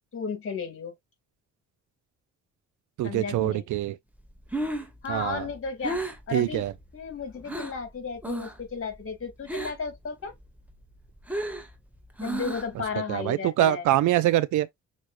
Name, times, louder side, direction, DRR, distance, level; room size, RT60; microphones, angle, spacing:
voice 1, 0.1-0.9 3.0-3.7 5.0-6.0 6.3-6.6 6.9-10.3 12.2-13.8, left 5 dB, 45° left, 2.5 m, -34 dB
voice 2, 3.0-4.0 5.1-5.5 6.3-6.7 13.1-14.7, right 14 dB, 75° right, 0.6 m, -24 dB
Breathing, 4.3-7.8 8.2-8.7 8.9-10.0 10.3-12.9, right 2 dB, 5° right, 1.5 m, -34 dB
6.2 x 3.1 x 2.5 m
cardioid pair, 90°, 30 cm